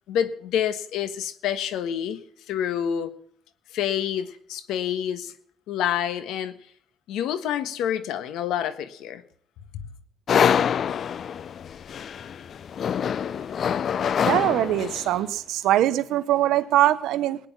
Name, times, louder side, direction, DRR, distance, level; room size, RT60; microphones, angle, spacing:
voice 1, 0.1-2.2 2.5-3.1 3.7-5.3 5.7-6.5 7.1-9.2 9.7-9.8, left 9 dB, 85° left, 12 dB, 1.4 m, -27 dB
sound 1, 10.3-15.2, left 8 dB, 50° left, 0.5 m, -25 dB
voice 2, 14.2-17.4, right 13 dB, 85° right, 13 dB, 1.0 m, -22 dB
19.0 x 9.7 x 5.5 m, 0.62 s
cardioid pair, 110°, 0 cm